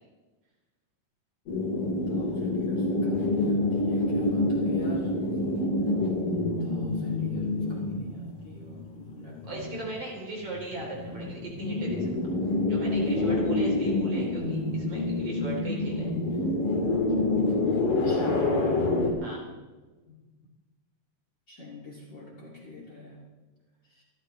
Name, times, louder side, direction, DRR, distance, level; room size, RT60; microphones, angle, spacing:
sound 1, 1.5-8.8 9.1-9.2 9.4-10.0 10.6-19.1, left 2 dB, 75° left, 4.1 m, -27 dB
voice 1, 2.1-5.1 6.6-9.9 17.8-18.6 20.1-20.3 21.5-23.2 23.9-24.0, left 2 dB, 35° left, -4 dB, 3.0 m, -44 dB
voice 2, 9.5-12.4 12.7-16.1 19.2-19.4, right 2 dB, 45° right, -2 dB, 4.5 m, -38 dB
25.5 x 13.5 x 3.3 m, 1.2 s
omnidirectional pair, 3.8 m